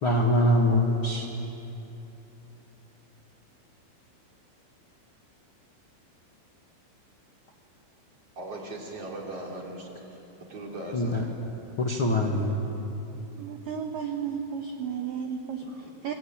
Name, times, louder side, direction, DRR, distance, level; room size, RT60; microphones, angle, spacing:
voice 1, 0.0-1.2 10.9-11.2 11.8-12.6, left 1 dB, 90° left, 0 dB, 1.1 m, -23 dB
voice 2, 8.4-9.9 10.5-11.2 15.6-15.9, right 1 dB, 30° right, -1 dB, 3.9 m, -39 dB
voice 3, 13.4-16.1, right 7 dB, 75° right, 4 dB, 2.0 m, -33 dB
28.5 x 23.0 x 9.0 m, 3.0 s
omnidirectional pair, 5.9 m